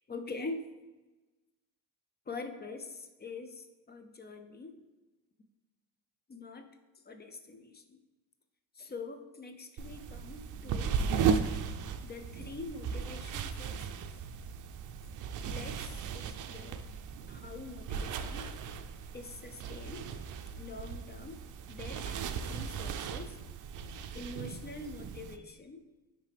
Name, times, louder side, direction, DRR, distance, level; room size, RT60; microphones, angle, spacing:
voice 1, 0.1-0.6 2.3-4.8 6.3-6.7 7.1-8.0 8.7-11.0 12.0-14.0 15.4-16.8 17.3-18.5 19.1-20.2 20.6-21.4 21.7-23.4 24.1-25.8, left 3 dB, 25° left, 6 dB, 0.5 m, -44 dB
sound 1, 9.8-25.4, right 6 dB, 50° right, 0.5 m, -36 dB
9.6 x 3.3 x 3.3 m, 1.2 s
cardioid pair, 100°, 40 cm